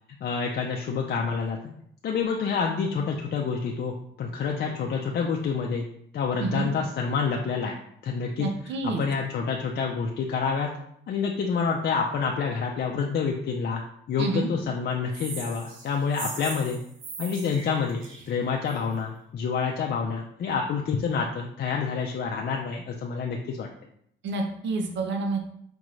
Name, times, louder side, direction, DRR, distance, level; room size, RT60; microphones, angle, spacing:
voice 1, 0.2-1.7 2.0-5.8 6.1-7.8 8.0-8.5 9.0-10.7 11.1-13.8 14.1-16.8 17.2-23.7, left 5 dB, 55° left, 1 dB, 0.5 m, -28 dB
voice 2, 6.4-6.7 8.4-9.0 14.2-14.5 24.2-25.4, right 3 dB, 65° right, 3 dB, 0.6 m, -28 dB
sound 1, 15.1-18.9, right 4 dB, 80° right, 1.0 m, -40 dB
5.2 x 2.4 x 3.1 m, 0.70 s
cardioid pair, 90°, 20 cm